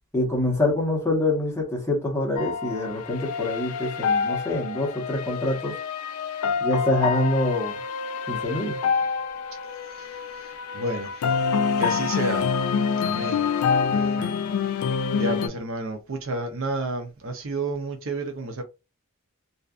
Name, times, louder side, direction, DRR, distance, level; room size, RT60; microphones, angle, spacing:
voice 1, 0.1-5.7 6.6-7.8 8.3-8.7, left 1 dB, 10° left, 0.9 m, -25 dB
sound 1, 2.4-15.5, left 6 dB, 75° left, 0.3 m, -26 dB
voice 2, 10.7-11.1 11.8-12.4 13.0-13.5 13.9-14.3 15.2-18.6, right 2 dB, 60° right, 0.6 m, -30 dB
2.5 x 2.4 x 2.3 m
head